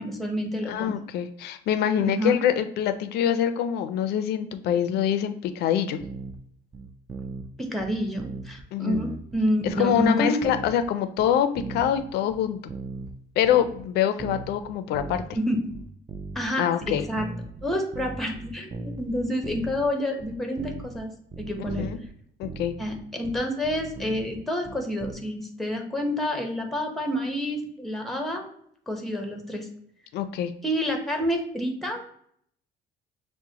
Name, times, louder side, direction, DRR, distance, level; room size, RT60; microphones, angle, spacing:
voice 1, 0.0-1.0 2.0-2.4 7.6-10.4 15.3-15.5 16.3-17.3 17.6-21.1 21.4-21.9 22.8-28.4 28.9-29.7 30.6-32.1, equal, ahead, 4 dB, 0.8 m, -28 dB
voice 2, 0.7-6.0 8.7-9.0 9.6-12.7 13.4-15.2 16.6-17.1 21.6-22.0 22.4-22.7 30.1-30.5, left 9 dB, 75° left, 10 dB, 0.5 m, -25 dB
sound 1, 6.0-6.4 6.7-7.5 7.8-8.6 8.9-10.1 10.4-10.9 11.2-13.2 13.4-13.9 14.2-15.4 15.7-16.5 16.8-19.9 20.2-21.0 21.3-22.1 22.4-25.1, right 4 dB, 20° right, 0.5 m, -38 dB
6.0 x 2.1 x 2.8 m, 0.67 s
cardioid pair, 110°, 17 cm